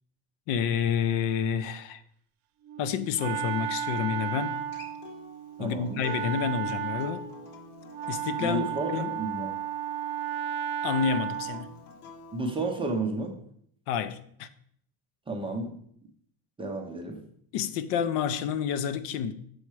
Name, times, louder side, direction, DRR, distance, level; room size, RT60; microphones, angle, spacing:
voice 1, 0.5-2.0 2.8-4.6 5.6-7.2 8.1-9.1 10.8-11.7 13.9-14.5 17.5-19.3, left 7 dB, 60° left, 0.6 m, -29 dB
Wind instrument woodwind instrument, 2.6-11.7, right 9 dB, 85° right, 0.7 m, -34 dB
Acoustic guitar, 4.5-9.7 11.3-12.5, left 5 dB, 85° left, 1.5 m, -48 dB
voice 2, 5.6-6.0 8.4-9.5 12.3-13.4 15.3-15.7 16.6-17.2, right 2 dB, 10° right, 0.5 m, -31 dB
6.3 x 4.3 x 4.7 m
cardioid pair, 165°, 46 cm